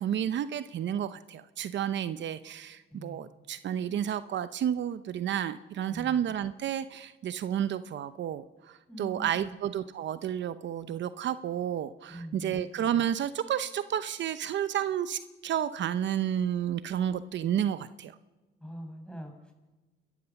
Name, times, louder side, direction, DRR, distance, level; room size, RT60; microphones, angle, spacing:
voice 1, 0.0-18.1, right 10 dB, 65° right, 13 dB, 0.8 m, -31 dB
voice 2, 2.9-3.2 5.9-6.2 8.9-9.5 12.1-12.6 18.6-19.5, equal, 5° left, 3 dB, 6.4 m, -43 dB
29.5 x 13.5 x 7.1 m, 1.2 s
cardioid pair, 90°, 20 cm